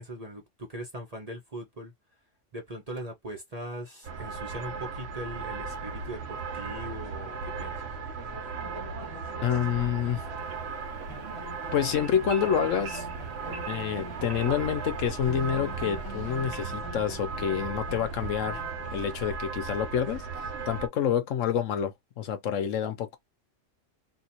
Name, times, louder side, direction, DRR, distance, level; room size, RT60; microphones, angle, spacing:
voice 1, 0.0-1.9 2.5-7.8, right 1 dB, 30° right, 1.0 m, -40 dB
sound 1, 4.0-20.9, right 4 dB, 60° right, 1.0 m, -36 dB
sound 2, 8.6-15.0 15.3-19.2, left 2 dB, 30° left, 0.6 m, -46 dB
voice 2, 9.4-10.2 11.7-13.1 13.7-18.6 18.9-20.3 20.7-23.2, left 9 dB, 75° left, 1.0 m, -28 dB
sound 3, 10.4-16.8, right 5 dB, 75° right, 1.5 m, -48 dB
4.1 x 2.5 x 2.8 m
omnidirectional pair, 1.4 m